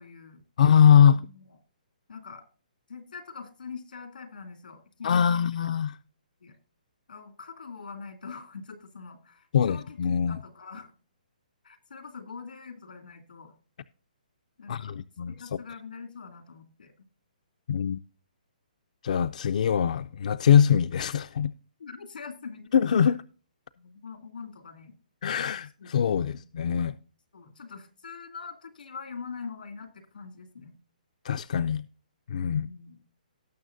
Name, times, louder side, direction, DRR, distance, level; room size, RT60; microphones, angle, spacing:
voice 1, 0.0-0.4 0.9-1.4 2.1-2.4 2.9-5.4 6.4-6.5 7.1-10.0 10.3-10.9 11.6-13.5 14.6-14.9 15.3-16.9 21.8-22.7 23.8-24.9 25.8-26.0 26.3-26.9 27.3-30.7 32.5-33.0, left 5 dB, 90° left, 2.6 m, -43 dB
voice 2, 0.6-1.2 5.0-6.0 9.5-10.4 14.7-15.3 17.7-18.0 19.0-21.5 22.7-23.2 25.2-26.9 31.2-31.9 32.3-32.7, left 8 dB, 55° left, 0.4 m, -22 dB
18.0 x 6.4 x 2.6 m
hypercardioid pair, 160°, 5 cm